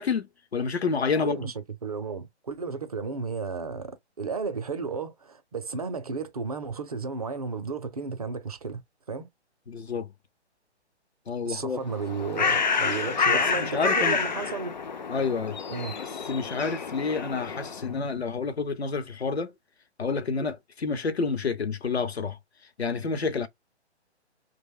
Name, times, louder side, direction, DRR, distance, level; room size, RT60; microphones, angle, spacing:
voice 1, 0.0-1.5 9.7-10.1 11.3-11.8 13.3-14.2 15.1-15.6 16.0-19.5 20.0-22.4 22.8-23.5, left 5 dB, 65° left, 0.8 m, -29 dB
voice 2, 1.2-1.5 1.8-8.8 9.1-9.3 11.4-14.7 15.7-15.9, right 5 dB, 35° right, 0.5 m, -33 dB
Bird, 11.8-17.9, left 5 dB, 40° left, 0.4 m, -28 dB
2.5 x 2.2 x 3.6 m
figure-of-eight pair, 135°, 34 cm